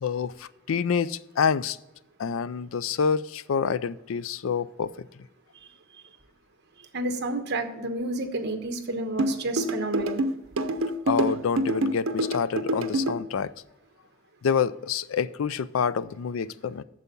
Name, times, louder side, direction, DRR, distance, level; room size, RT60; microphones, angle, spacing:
voice 1, 0.0-1.8 2.2-4.9 11.1-13.5 14.4-16.8, left 6 dB, 75° left, 0.4 m, -27 dB
voice 2, 6.9-10.2, right 2 dB, 55° right, 1.2 m, -30 dB
sound 1, 9.2-13.2, right 1 dB, 85° right, 0.7 m, -26 dB
8.2 x 7.0 x 5.4 m
head